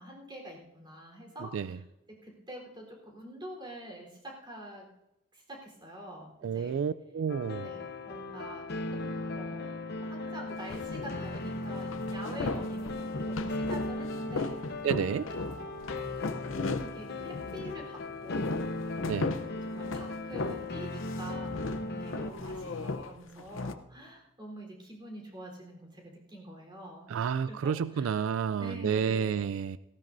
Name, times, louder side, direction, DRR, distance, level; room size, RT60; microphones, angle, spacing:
voice 1, 0.0-4.9 5.3-6.8 7.6-9.7 10.0-12.9 13.3-14.6 15.5-15.9 16.8-29.3, equal, 25° right, 0 dB, 3.8 m, -46 dB
voice 2, 6.4-7.7 14.8-15.3 19.1-19.3 27.1-29.8, right 7 dB, 80° right, 15 dB, 0.3 m, -30 dB
sound 1, 7.3-22.3, left 2 dB, 55° left, 0.9 m, -37 dB
sound 2, 10.7-11.5 11.9-17.9 18.1-20.8 21.0-23.7, left 3 dB, 80° left, 0.7 m, -36 dB
18.0 x 15.5 x 2.6 m, 0.91 s
head